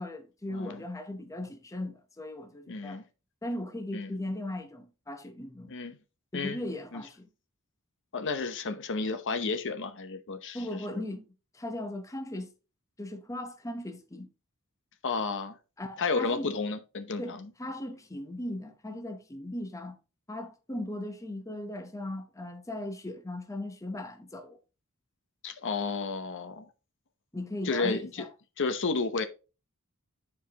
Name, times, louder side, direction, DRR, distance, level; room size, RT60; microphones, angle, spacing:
voice 1, 0.0-3.1 3.4-5.7 6.3-7.3 10.5-11.2 11.5-12.5 13.0-14.3 15.8-16.6 17.2-20.0 20.3-24.6 27.3-28.3, left 1 dB, 15° left, 0.7 m, -38 dB
voice 2, 0.5-0.8 2.7-3.0 3.9-4.1 5.7-6.0 6.3-6.6 6.9-7.0 8.1-11.1 15.0-15.6 16.0-17.5 25.4-26.7 27.6-28.2 28.6-29.3, left 4 dB, 60° left, 0.8 m, -32 dB
10.5 x 4.8 x 2.8 m
head